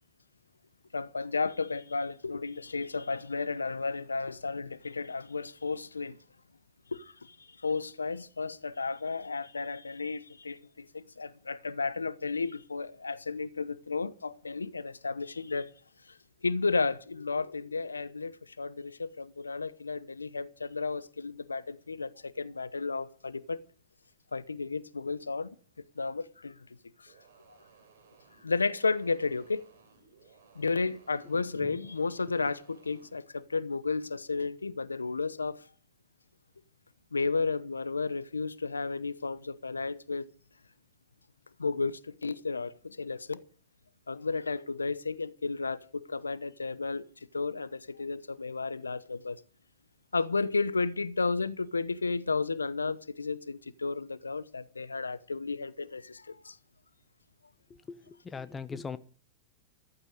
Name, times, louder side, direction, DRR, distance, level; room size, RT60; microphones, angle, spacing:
voice 1, 0.9-6.2 6.9-7.4 7.6-15.7 16.4-23.6 24.3-25.5 26.0-26.5 27.0-27.1 28.4-29.7 30.6-35.6 37.1-40.3 41.6-43.4 44.1-47.1 47.3-49.4 50.1-56.6, left 4 dB, 90° left, 0.9 m, -33 dB
sound 1, 27.1-33.2, right 6 dB, 70° right, 4.7 m, -61 dB
voice 2, 31.3-31.8 57.7-59.0, left 5 dB, 20° left, 1.3 m, -41 dB
15.0 x 14.5 x 5.1 m
hypercardioid pair, 95°, 0 cm